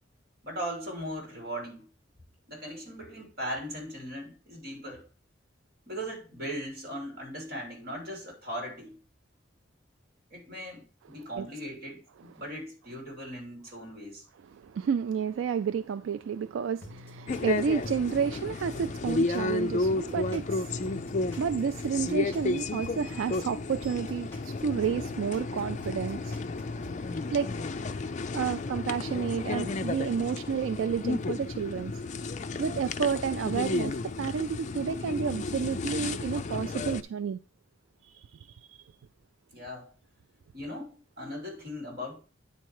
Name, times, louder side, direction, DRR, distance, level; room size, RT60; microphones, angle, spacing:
voice 1, 0.4-1.8 2.5-5.0 5.9-9.0 10.3-14.2 39.5-39.9 40.5-42.2, equal, 55° right, 3.1 m, -39 dB
voice 2, 14.5-21.0 21.4-26.3 27.3-27.5 28.3-31.9 32.6-37.4 38.0-38.8, right 7 dB, 80° right, 0.3 m, -31 dB
sound 1, 16.8-19.5 19.8-23.5 23.8-27.0, left 1 dB, 10° left, 3.1 m, -48 dB
sound 2, 17.3-37.0, left 3 dB, 40° left, 0.4 m, -32 dB
9.3 x 4.3 x 4.7 m
head